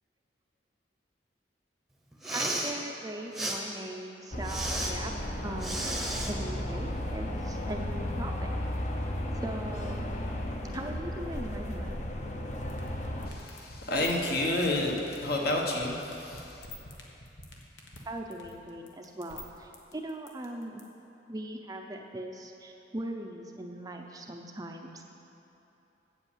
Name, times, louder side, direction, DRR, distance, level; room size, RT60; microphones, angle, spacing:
Respiratory sounds, 2.1-2.7 3.3-3.6 4.4-4.9 5.6-6.3, right 1 dB, ahead, 0.9 m, -33 dB
voice 1, 2.3-5.1 5.4-8.5 9.4-10.1 10.7-12.0 18.0-20.8 21.3-25.1, right 1 dB, 20° right, 3 dB, 0.5 m, -40 dB
sound 1, 4.3-13.3, left 1 dB, 40° left, 0.8 m, -34 dB
sound 2, 12.5-20.8, left 2 dB, 80° left, 1.4 m, -46 dB
voice 2, 13.3-16.7, left 1 dB, 55° left, 0 dB, 1.3 m, -30 dB
8.6 x 8.0 x 7.3 m, 3.0 s
head